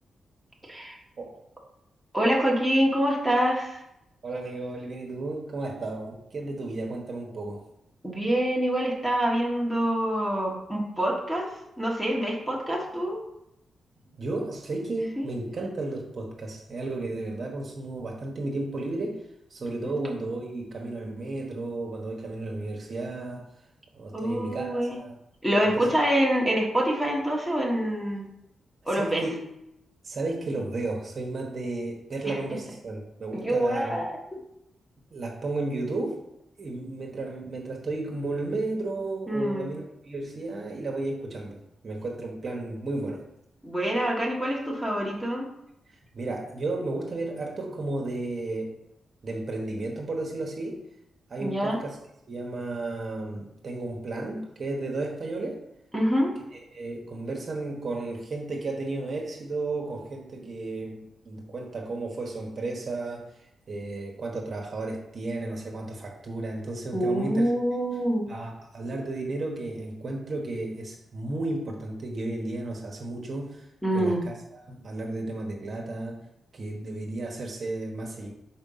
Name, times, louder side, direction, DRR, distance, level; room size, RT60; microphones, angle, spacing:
voice 1, 2.1-3.8 8.0-11.5 11.8-13.2 15.2-15.3 19.9-20.0 24.1-25.0 25.4-28.3 28.8-29.2 32.2-32.3 33.3-34.2 39.3-39.7 43.6-45.5 51.4-51.8 55.9-56.3 66.9-68.2 73.8-74.3, equal, 5° left, -2 dB, 1.4 m, -26 dB
voice 2, 4.2-7.6 14.1-19.2 19.5-23.4 23.9-25.1 25.6-25.9 29.0-29.5 30.0-34.0 35.1-36.2 36.6-43.2 45.9-48.8 49.2-50.8 51.3-52.0 52.3-55.6 56.7-63.3 63.7-67.5 68.3-73.7 73.9-76.2 76.5-78.3, right 2 dB, 45° right, 0 dB, 1.2 m, -33 dB
4.5 x 4.4 x 5.5 m, 0.82 s
cardioid pair, 105°, 0 cm